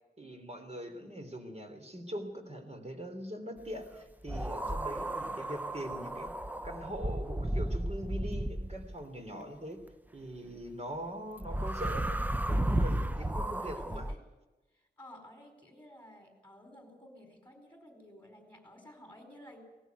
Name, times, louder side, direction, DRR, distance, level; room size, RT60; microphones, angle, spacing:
voice 1, 0.2-6.3 6.6-9.8 10.1-14.1, equal, 40° right, 5 dB, 3.2 m, -42 dB
sound 1, 4.3-9.0 11.4-14.1, right 1 dB, 10° right, 0.6 m, -33 dB
voice 2, 13.4-14.2 14.7-19.6, left 1 dB, 10° left, 3 dB, 4.6 m, -54 dB
19.0 x 14.5 x 9.3 m, 1.2 s
wide cardioid pair, 90°, 17 cm